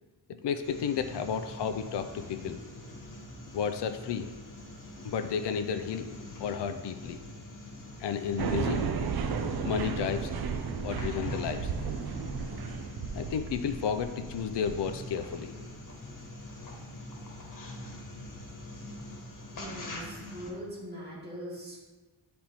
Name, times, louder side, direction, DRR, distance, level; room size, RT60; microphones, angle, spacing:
voice 1, 0.4-2.6 3.5-4.3 5.0-6.1 6.4-7.2 8.0-8.8 9.6-10.3 10.8-11.7 13.1-15.5, left 7 dB, 75° left, 8 dB, 0.5 m, -32 dB
sound 1, 0.6-20.5, left 1 dB, 50° left, 1.4 m, -44 dB
sound 2, 8.4-15.0, right 6 dB, 60° right, 0.6 m, -34 dB
voice 2, 19.5-21.8, equal, 25° right, -7 dB, 2.1 m, -41 dB
10.0 x 4.2 x 2.9 m, 1.2 s
wide cardioid pair, 125°, 42 cm